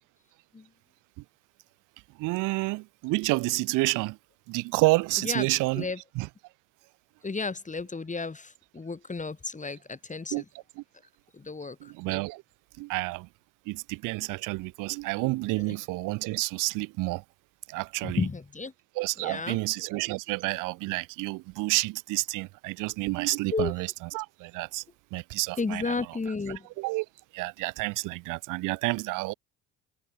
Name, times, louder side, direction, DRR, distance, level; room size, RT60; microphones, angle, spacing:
voice 1, 2.2-4.2 4.5-5.9 6.1-6.3 10.3-10.4 10.8-10.9 11.8-12.4 12.8-13.3 13.6-17.2 17.7-18.3 18.9-24.8 25.1-25.9 26.8-27.0 27.3-29.3, right 23 dB, 70° right, 5.0 m, -29 dB
voice 2, 7.2-10.4 11.3-11.9 15.7-15.8 18.0-18.7 19.2-19.6 23.5-23.7 25.6-26.7, left 4 dB, 20° left, 4.1 m, -32 dB
hypercardioid pair, 60°, 33 cm